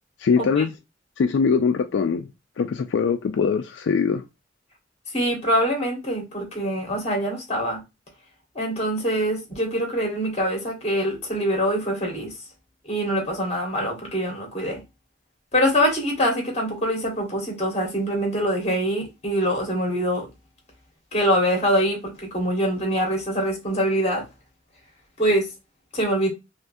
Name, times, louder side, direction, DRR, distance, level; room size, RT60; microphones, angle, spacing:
voice 1, 0.2-0.7 1.2-2.3 2.6-4.2, left 5 dB, 70° left, 0.3 m, -22 dB
voice 2, 5.1-7.8 8.5-12.3 12.8-14.8 15.5-20.3 21.1-24.3 25.2-25.5 25.9-26.3, equal, 35° left, 1.4 m, -24 dB
3.5 x 3.1 x 2.6 m
head